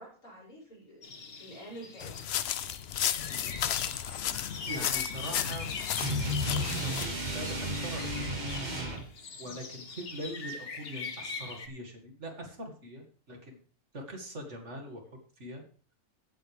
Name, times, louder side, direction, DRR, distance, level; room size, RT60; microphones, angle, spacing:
voice 1, 0.0-2.3 9.4-9.6, right 1 dB, 80° left, -5 dB, 6.6 m, -49 dB
sound 1, 1.0-11.7, left 4 dB, 45° left, 1.3 m, -42 dB
sound 2, 2.0-7.1, left 10 dB, 60° left, 0.7 m, -33 dB
voice 2, 4.6-5.8 6.4-8.4 9.4-13.6 13.9-15.6, equal, 50° right, 2 dB, 2.5 m, -42 dB
sound 3, 6.0-9.1, equal, 30° right, 1.9 m, -33 dB
16.0 x 7.7 x 3.4 m, 0.42 s
omnidirectional pair, 1.5 m